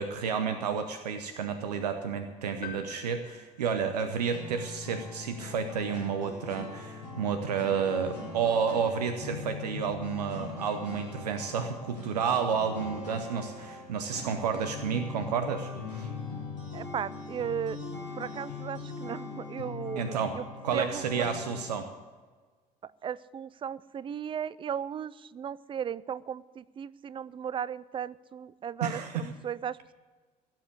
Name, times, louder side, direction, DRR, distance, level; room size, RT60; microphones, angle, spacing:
voice 1, 0.0-16.1 20.0-20.4 20.6-21.9 28.8-29.3, right 6 dB, 75° right, 9 dB, 0.9 m, -31 dB
sound 1, 2.6-4.4, left 9 dB, 45° left, 2.0 m, -46 dB
sound 2, 4.3-21.7, left 4 dB, 90° right, 4.2 m, -41 dB
voice 2, 16.7-17.8 18.2-20.5 20.7-21.3 23.0-29.9, right 8 dB, 25° right, 20 dB, 0.5 m, -36 dB
17.0 x 7.5 x 8.1 m, 1.4 s
figure-of-eight pair, 55°, 21 cm